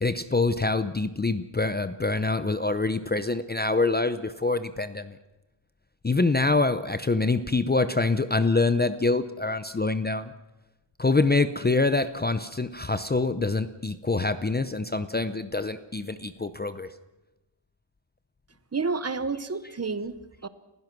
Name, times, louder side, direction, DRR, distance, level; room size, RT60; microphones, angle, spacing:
voice 1, 0.0-5.2 6.0-10.3 11.0-16.9, left 3 dB, 20° left, 12 dB, 0.6 m, -25 dB
voice 2, 18.7-20.5, right 4 dB, 30° right, 13 dB, 1.0 m, -30 dB
29.5 x 16.0 x 6.1 m, 1.0 s
wide cardioid pair, 170°, 49 cm